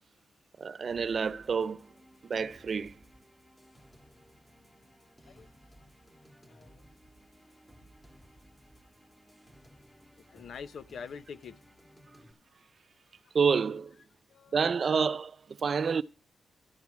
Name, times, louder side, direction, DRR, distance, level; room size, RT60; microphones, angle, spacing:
voice 1, 0.6-1.9 2.2-3.0 13.3-14.0 14.5-16.0, right 5 dB, 50° right, 0.5 m, -28 dB
sound 1, 0.9-12.3, equal, 5° left, 2.3 m, -58 dB
voice 2, 6.5-6.8 10.3-11.6 14.3-14.5, left 6 dB, 70° left, 0.7 m, -45 dB
13.0 x 4.7 x 8.3 m
cardioid pair, 90°, 0 cm